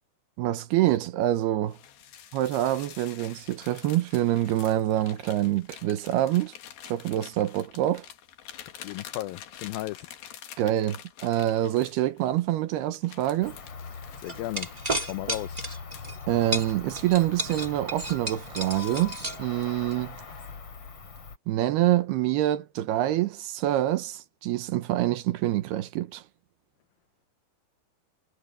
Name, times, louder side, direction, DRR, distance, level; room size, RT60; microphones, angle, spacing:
voice 1, 0.4-1.8 2.3-6.5 6.9-8.1 10.6-13.6 16.3-20.2 21.5-26.2, right 14 dB, 75° right, 2.9 m, -26 dB
sound 1, 1.7-12.5 12.9-16.2 16.7-17.6 18.0-18.2 18.7-19.3, left 10 dB, 65° left, 3.4 m, -47 dB
voice 2, 8.8-10.1 14.2-14.7 15.1-15.6, left 16 dB, 85° left, 2.0 m, -34 dB
Cricket, 13.4-21.4, left 5 dB, 35° left, 3.5 m, -42 dB
sound 2, 14.3-16.2 16.5-19.9, right 1 dB, 20° right, 1.1 m, -33 dB
omnidirectional pair, 4.9 m